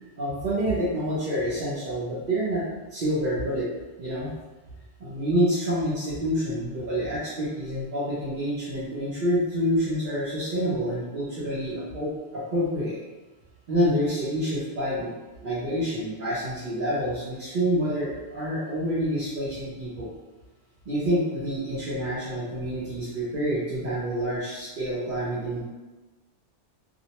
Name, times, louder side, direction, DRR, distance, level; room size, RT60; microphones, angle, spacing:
voice 1, 0.2-2.6 2.9-3.7 4.0-4.3 5.0-13.0 13.7-15.1 15.4-20.1 20.9-25.6, equal, 50° right, -10 dB, 0.7 m, -27 dB
2.5 x 2.1 x 2.8 m, 1.2 s
omnidirectional pair, 1.2 m